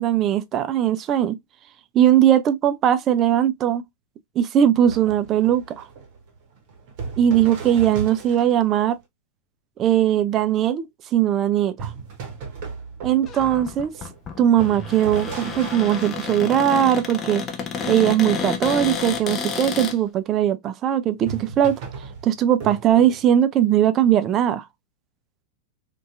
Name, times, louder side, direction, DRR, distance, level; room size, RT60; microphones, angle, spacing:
voice 1, 0.0-1.4 1.9-3.8 4.4-5.9 7.2-9.0 9.8-11.9 13.0-13.9 14.4-17.4 17.9-21.8 22.2-24.6, right 10 dB, 30° right, 0.3 m, -19 dB
sound 1, 4.9-8.8 11.8-17.5 21.2-23.4, right 5 dB, 50° right, 0.8 m, -36 dB
Cupboard open or close, 13.3-20.0, left 6 dB, 30° left, 0.5 m, -30 dB
2.6 x 2.2 x 2.3 m
figure-of-eight pair, 95°, 0 cm